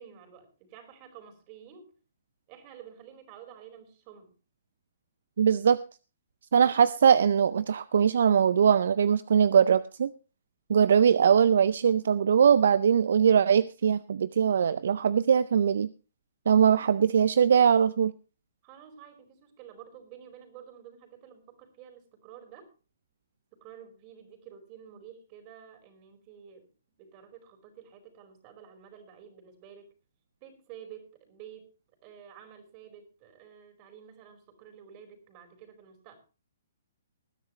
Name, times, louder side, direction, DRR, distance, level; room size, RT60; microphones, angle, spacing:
voice 1, 0.0-1.9 2.5-4.3 18.6-22.7 23.6-26.7 27.0-29.9 30.4-31.7 32.0-36.2, right 8 dB, 35° right, 5 dB, 4.8 m, -50 dB
voice 2, 5.4-5.8 6.5-10.1 10.7-15.9 16.5-18.1, right 7 dB, 70° right, 16 dB, 0.5 m, -21 dB
20.0 x 10.5 x 3.1 m, 0.34 s
hypercardioid pair, 130°, 0 cm